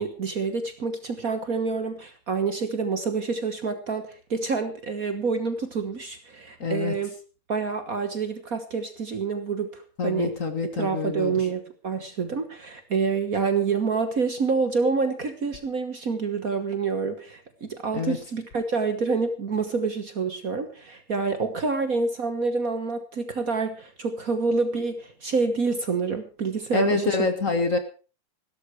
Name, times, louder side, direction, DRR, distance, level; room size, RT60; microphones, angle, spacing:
voice 1, 0.0-7.1 7.5-10.3 10.8-27.3, right 4 dB, 45° right, 9 dB, 1.5 m, -27 dB
voice 2, 6.6-7.0 10.0-11.5 17.9-18.2 26.7-27.8, left 4 dB, 40° left, 8 dB, 1.8 m, -26 dB
16.5 x 13.0 x 4.7 m, 0.36 s
omnidirectional pair, 2.4 m